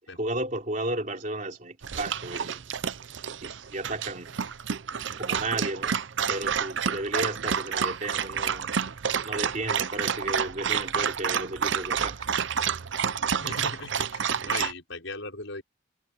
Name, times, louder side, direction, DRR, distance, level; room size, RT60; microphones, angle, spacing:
voice 1, 0.2-2.6 3.4-4.4 5.2-6.0 6.3-8.8 9.2-12.3, right 2 dB, 40° right, 3.6 m, -33 dB
Dog, 1.8-14.7, right 7 dB, 65° right, 0.7 m, -29 dB
voice 2, 13.4-15.6, left 3 dB, 70° left, 5.9 m, -38 dB
head